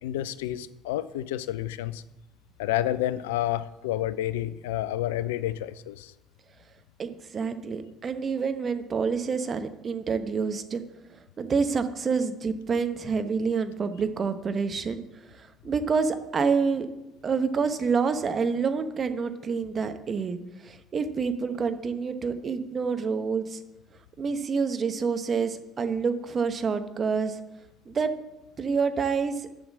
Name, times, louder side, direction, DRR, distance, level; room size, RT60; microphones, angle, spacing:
voice 1, 0.0-2.0 2.6-6.1, left 13 dB, 75° left, 16 dB, 0.4 m, -29 dB
voice 2, 7.0-10.8 11.1-16.9 17.2-23.6 24.2-27.4 27.9-28.1 28.6-29.5, right 5 dB, 40° right, 9 dB, 1.0 m, -28 dB
7.2 x 6.0 x 7.4 m, 0.97 s
hypercardioid pair, 55°, 0 cm